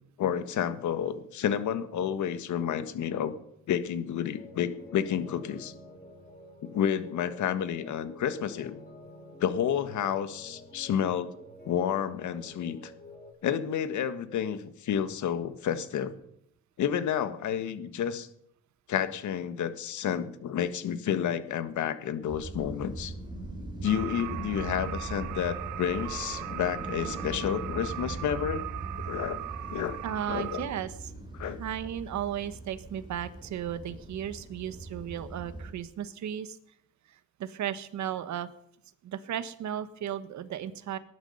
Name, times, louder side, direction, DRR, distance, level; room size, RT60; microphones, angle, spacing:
voice 1, 0.2-3.3 3.7-5.7 6.7-8.8 9.4-11.3 11.7-12.9 13.4-16.1 16.8-18.3 18.9-23.1 23.8-28.6 29.0-29.4 29.7-30.0 30.3-30.7 31.3-31.6, left 9 dB, 75° left, 11 dB, 1.5 m, -30 dB
sound 1, 4.2-13.3, left 1 dB, 30° left, 4.9 m, -49 dB
sound 2, 22.3-35.7, right 2 dB, 15° right, 4.5 m, -40 dB
sound 3, 23.8-30.7, right 14 dB, 85° right, 0.9 m, -39 dB
voice 2, 30.0-30.9 31.4-36.6 37.4-38.5 39.0-41.0, right 10 dB, 70° right, 12 dB, 1.3 m, -35 dB
19.5 x 11.5 x 5.5 m, 0.75 s
cardioid pair, 90°, 30 cm